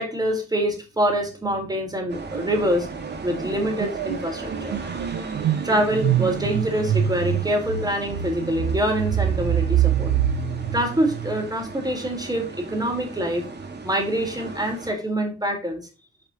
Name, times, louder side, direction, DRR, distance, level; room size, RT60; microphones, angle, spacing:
voice 1, 0.0-2.9 3.2-5.0 5.6-10.1 10.7-13.4 13.8-15.8, equal, 15° right, 3 dB, 3.6 m, -25 dB
sound 1, 2.1-14.9, right 4 dB, 35° right, 2.2 m, -36 dB
sound 2, 2.4-2.7 2.9-11.7, right 10 dB, 70° right, 1.3 m, -25 dB
9.8 x 5.2 x 2.9 m, 0.32 s
cardioid pair, 90°, 30 cm